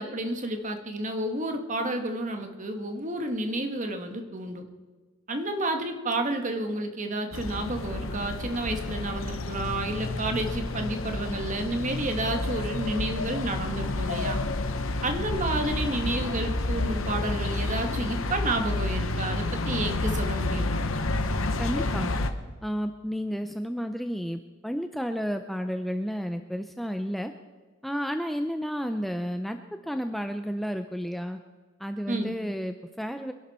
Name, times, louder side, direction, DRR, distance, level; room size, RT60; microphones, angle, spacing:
voice 1, 0.0-4.6 5.3-14.4 15.0-20.9 32.1-32.3, right 1 dB, 35° right, 5 dB, 1.7 m, -30 dB
sound 1, 7.3-22.3, left 2 dB, 75° left, 1.1 m, -30 dB
voice 2, 21.6-22.1 22.6-27.3 27.8-29.6 29.8-31.4 31.8-33.3, equal, ahead, 7 dB, 0.5 m, -31 dB
25.0 x 11.5 x 4.3 m, 1.4 s
head